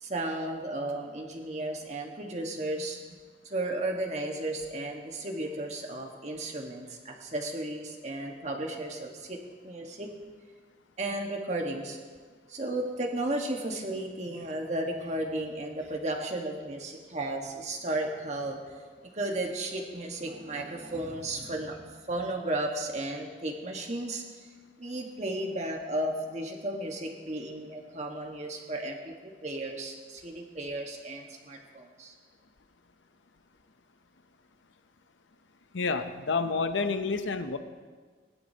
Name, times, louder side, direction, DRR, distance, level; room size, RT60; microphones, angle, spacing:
voice 1, 0.0-3.0 3.5-10.1 11.0-12.0 12.5-18.8 19.0-21.8 22.1-24.2 24.8-32.1, right 1 dB, 35° right, 1 dB, 1.5 m, -34 dB
voice 2, 35.7-37.6, left 4 dB, 75° left, 9 dB, 0.7 m, -29 dB
20.5 x 11.5 x 2.9 m, 1.5 s
head